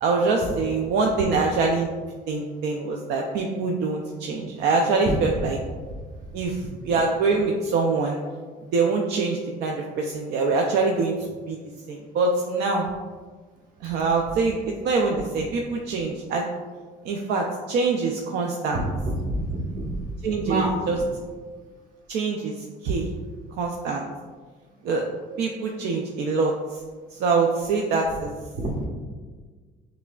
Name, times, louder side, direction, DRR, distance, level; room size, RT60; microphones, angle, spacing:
voice 1, 0.0-1.9 2.3-5.6 6.3-8.2 8.7-11.1 11.5-11.6 11.9-12.9 13.8-16.5 17.0-18.8 20.2-21.0 22.1-22.5 22.8-23.1 23.6-24.0 24.8-25.0 25.4-26.8 27.1-28.3, right 4 dB, 80° right, 1 dB, 0.5 m, -24 dB
voice 2, 18.7-20.0 20.4-20.8 28.5-28.9, right 1 dB, 55° right, -2 dB, 1.2 m, -27 dB
6.0 x 3.3 x 2.3 m, 1.5 s
cardioid pair, 110°, 17 cm